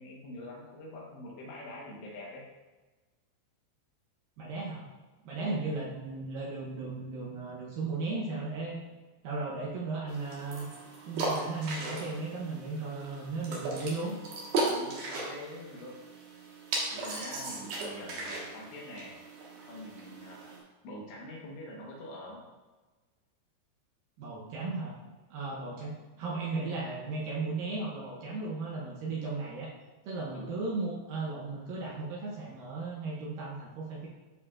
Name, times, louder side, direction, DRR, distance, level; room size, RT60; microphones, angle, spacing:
voice 1, 0.0-2.4 5.4-5.6 14.6-16.0 16.9-19.2 19.7-20.5 20.8-22.4 30.3-30.5, left 1 dB, 75° left, -3 dB, 3.3 m, -45 dB
voice 2, 4.4-4.9 5.2-8.8 9.2-10.7 11.0-14.2 24.2-25.0 25.3-29.7 30.0-34.1, right 3 dB, 80° right, -4 dB, 2.0 m, -36 dB
sound 1, 10.1-20.6, right 2 dB, 65° right, 2.1 m, -37 dB
12.0 x 4.9 x 2.4 m, 1.2 s
omnidirectional pair, 5.2 m